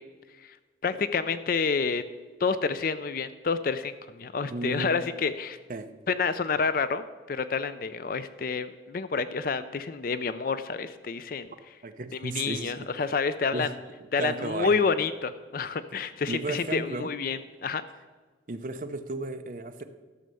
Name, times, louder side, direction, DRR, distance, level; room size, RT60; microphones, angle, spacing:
voice 1, 0.8-2.0 2.4-5.6 6.1-11.5 12.1-13.7 14.1-17.8, left 5 dB, 50° left, 13 dB, 0.4 m, -29 dB
voice 2, 4.4-5.0 5.7-5.9 11.8-12.9 13.5-13.7 14.2-14.8 16.3-17.1 18.5-19.8, right 3 dB, 45° right, 7 dB, 0.7 m, -34 dB
12.5 x 6.4 x 6.9 m, 1.3 s
head